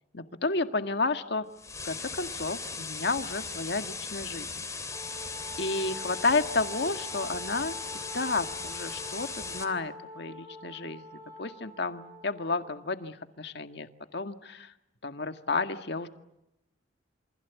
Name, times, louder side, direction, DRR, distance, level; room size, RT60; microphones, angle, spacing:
voice 1, 0.1-1.5 1.8-4.7 5.2-7.7 8.1-14.7 15.0-16.1, left 3 dB, 65° left, 8 dB, 1.8 m, -32 dB
sound 1, 1.6-9.6, left 4 dB, 15° left, 2.9 m, -38 dB
Wind instrument woodwind instrument, 4.9-12.9, left 1 dB, 15° right, 7.7 m, -46 dB
28.5 x 25.5 x 8.3 m, 0.87 s
head